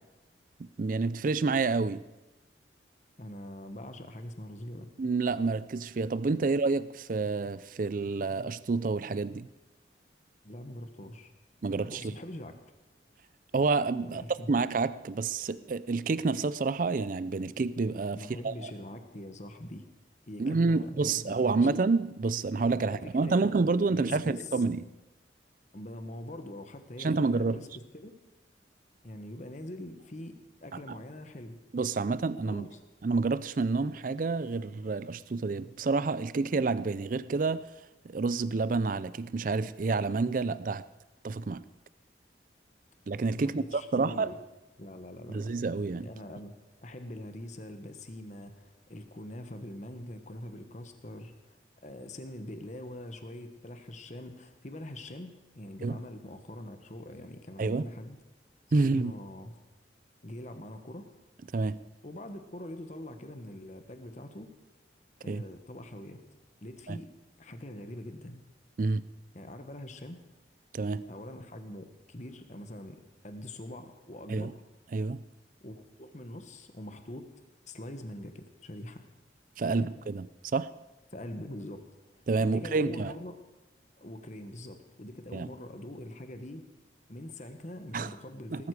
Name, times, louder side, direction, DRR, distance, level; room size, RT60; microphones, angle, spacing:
voice 1, 0.6-2.0 5.0-9.5 11.6-12.1 13.5-14.2 14.5-18.2 18.4-18.5 20.4-24.8 27.0-27.6 30.9-31.0 31.7-32.7 33.0-37.7 38.0-40.8 41.2-41.6 43.1-44.3 45.3-46.1 55.8-56.0 57.6-57.9 58.7-59.1 61.5-61.8 65.3-65.4 66.9-67.0 68.8-69.0 70.7-71.0 74.3-74.5 74.9-75.2 79.6-80.3 80.5-80.7 82.3-83.1 85.3-85.5 87.9-88.1 88.5-88.6, right 3 dB, 45° right, 0.4 m, -28 dB
voice 2, 3.2-4.9 6.4-6.5 10.4-11.3 11.7-12.5 14.0-14.5 18.2-19.9 20.3-21.7 22.8-23.5 23.9-24.6 25.7-28.1 29.0-31.6 32.5-32.8 43.3-44.4 44.8-45.5 46.0-46.5 46.8-51.6 51.8-58.2 58.7-59.5 60.2-61.1 62.0-64.5 65.2-66.2 66.6-67.1 67.4-68.5 69.3-70.2 71.1-74.6 75.6-77.3 77.6-79.0 79.7-79.9 81.1-81.8 82.1-83.3 84.0-86.6 87.1-88.7, left 1 dB, 40° left, 1.3 m, -43 dB
19.0 x 13.0 x 4.8 m
head